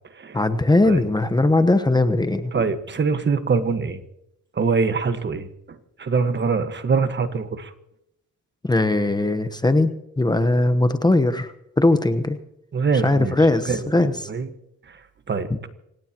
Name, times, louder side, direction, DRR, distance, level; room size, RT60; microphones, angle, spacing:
voice 1, 0.3-2.5 8.6-12.4 12.9-14.1, left 2 dB, 15° left, 9 dB, 1.1 m, -19 dB
voice 2, 2.5-4.0 4.5-7.7 12.7-13.4 13.6-14.5 14.9-15.0 15.3-15.5, right 5 dB, 35° right, 9 dB, 1.5 m, -24 dB
26.5 x 17.0 x 3.0 m, 0.82 s
cardioid pair, 90°, 30 cm